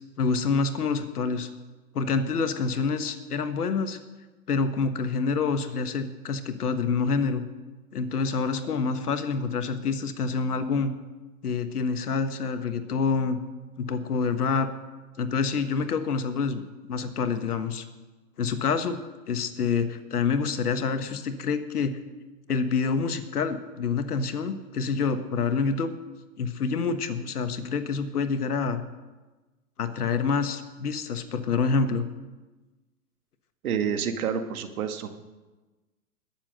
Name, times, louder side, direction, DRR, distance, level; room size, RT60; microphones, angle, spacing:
voice 1, 0.2-1.5 1.9-4.0 4.5-7.4 7.9-10.9 11.4-13.4 13.8-14.7 15.2-17.8 18.4-19.0 19.3-22.0 22.5-25.9 26.4-28.8 29.8-32.0, left 5 dB, 85° left, 9 dB, 1.5 m, -27 dB
voice 2, 33.6-35.1, right 7 dB, 70° right, 7 dB, 1.8 m, -28 dB
20.5 x 7.4 x 6.4 m, 1.2 s
hypercardioid pair, 125°, 44 cm